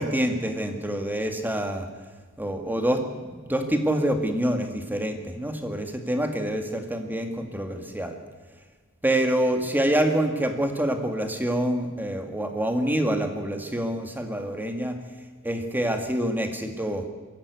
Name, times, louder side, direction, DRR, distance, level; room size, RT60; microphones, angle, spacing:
voice 1, 0.0-1.9 2.4-8.2 9.0-15.0 15.4-17.1, right 1 dB, 10° right, 6 dB, 2.0 m, -26 dB
22.5 x 14.5 x 8.4 m, 1.4 s
head